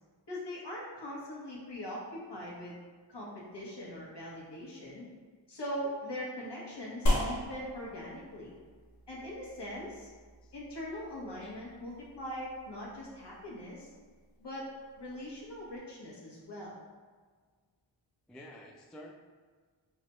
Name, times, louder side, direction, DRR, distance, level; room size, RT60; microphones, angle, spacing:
voice 1, 0.3-2.7 3.1-5.1 5.5-8.6 9.1-10.1 10.5-13.9 14.4-14.7 15.0-16.8, equal, 60° left, -5 dB, 1.2 m, -41 dB
sound 1, 7.1-15.8, left 1 dB, 35° left, 1.0 m, -38 dB
voice 2, 18.3-19.1, left 1 dB, ahead, 0 dB, 0.3 m, -50 dB
4.6 x 2.3 x 3.0 m, 1.5 s
cardioid pair, 60°, 47 cm